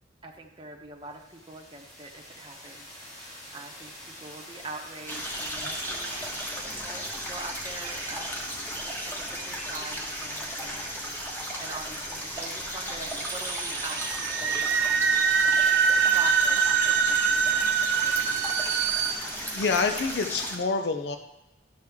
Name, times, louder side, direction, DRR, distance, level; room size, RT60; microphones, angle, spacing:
voice 1, 0.2-2.9 3.1-15.4 16.1-18.6, right 3 dB, 25° right, 0 dB, 0.9 m, -44 dB
sound 1, 1.0-7.6, left 1 dB, 40° left, 2.4 m, -47 dB
sound 2, 5.1-20.6, equal, 10° left, 1.2 m, -35 dB
sound 3, 13.1-19.1, right 6 dB, 75° right, 0.6 m, -24 dB
voice 2, 19.5-21.2, left 4 dB, 60° left, 6 dB, 0.6 m, -27 dB
11.5 x 6.4 x 3.5 m, 0.95 s
head